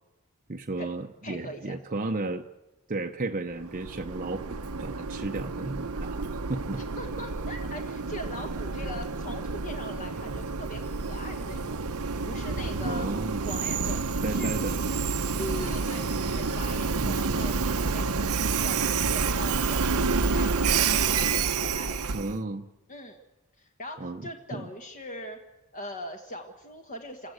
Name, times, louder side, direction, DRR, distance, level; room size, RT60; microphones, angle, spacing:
voice 1, 0.5-2.5 2.9-6.8 12.8-13.5 14.2-14.8 17.0-17.4 22.1-22.7 24.0-24.7, right 2 dB, 35° right, 4 dB, 0.8 m, -34 dB
voice 2, 1.2-1.8 6.8-11.8 12.2-13.2 13.5-14.5 15.4-21.9 22.9-23.2 23.6-25.4 25.7-27.3, left 1 dB, 40° left, 3 dB, 1.4 m, -41 dB
Train, 3.6-22.4, right 4 dB, 85° right, 0.9 m, -29 dB
28.5 x 15.5 x 8.1 m, 1.1 s
head